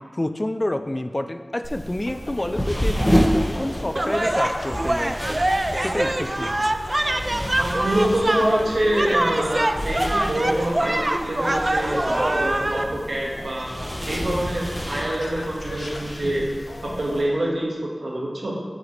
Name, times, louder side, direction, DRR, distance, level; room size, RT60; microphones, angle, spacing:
voice 1, 0.1-5.4 5.8-6.6 14.3-14.4, left 1 dB, 30° left, 9 dB, 0.5 m, -28 dB
sound 1, 0.9-17.5, left 1 dB, 70° left, 0.9 m, -40 dB
sound 2, 1.6-17.2, equal, 15° left, 1.9 m, -30 dB
sound 3, 4.0-12.8, right 1 dB, 35° right, 0.4 m, -24 dB
voice 2, 7.6-13.7 14.0-16.5 16.8-18.5, right 1 dB, 85° right, -3 dB, 1.8 m, -25 dB
9.0 x 8.1 x 3.3 m, 1.4 s
wide cardioid pair, 55°, 0 cm